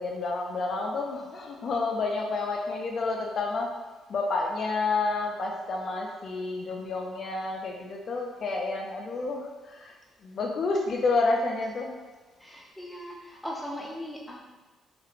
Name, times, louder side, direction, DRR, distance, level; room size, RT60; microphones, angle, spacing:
voice 1, 0.0-3.7 4.1-10.0 10.2-11.9, left 3 dB, 55° left, 0 dB, 0.3 m, -29 dB
voice 2, 12.4-14.4, equal, 5° left, -3 dB, 0.5 m, -39 dB
2.3 x 2.0 x 3.0 m, 1.2 s
cardioid pair, 90°, 0 cm